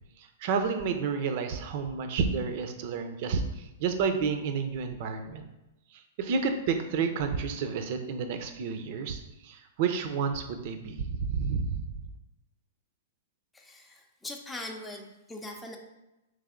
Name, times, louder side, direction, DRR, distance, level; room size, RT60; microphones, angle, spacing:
voice 1, 0.4-5.5 6.2-11.9, right 5 dB, 50° right, 7 dB, 0.6 m, -30 dB
voice 2, 13.5-15.8, left 1 dB, 10° left, 1 dB, 0.6 m, -41 dB
3.4 x 3.3 x 3.7 m, 0.96 s
hypercardioid pair, 115°, 0 cm